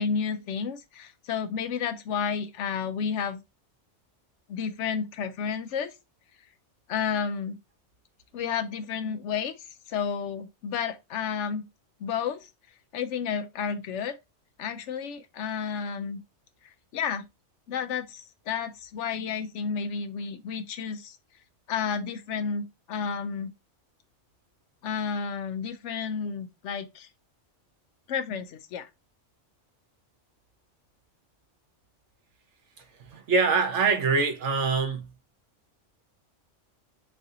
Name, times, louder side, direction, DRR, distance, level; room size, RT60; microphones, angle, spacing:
voice 1, 0.0-3.4 4.5-5.9 6.9-7.6 8.3-11.6 12.0-12.5 12.9-14.2 14.6-16.2 16.9-17.3 17.7-21.2 21.7-23.5 24.8-27.1 28.1-28.9, left 6 dB, 75° left, 0.9 m, -31 dB
voice 2, 32.8-35.1, right 4 dB, 70° right, 1.1 m, -25 dB
3.1 x 2.8 x 3.7 m
omnidirectional pair, 1.3 m